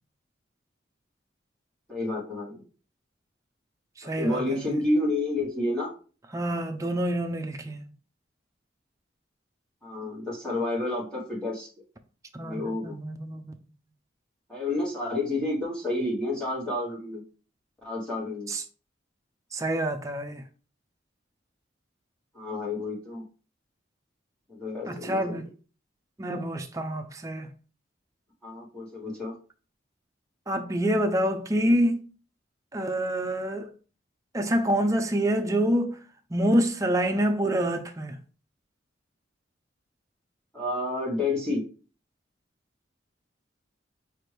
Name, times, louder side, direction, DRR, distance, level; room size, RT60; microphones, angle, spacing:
voice 1, 1.9-2.6 4.0-5.9 9.8-11.7 12.4-13.0 14.5-17.2 17.8-18.5 22.3-23.2 24.5-25.4 28.4-29.3 40.5-41.7, left 2 dB, 5° left, 1.3 m, -30 dB
voice 2, 4.0-4.8 6.3-7.8 12.3-13.6 18.5-18.6 19.5-20.4 24.9-25.4 26.2-27.5 30.5-32.1 32.7-33.7 34.3-36.0 36.3-38.2, right 1 dB, 15° right, 0.4 m, -27 dB
6.0 x 2.6 x 3.3 m
head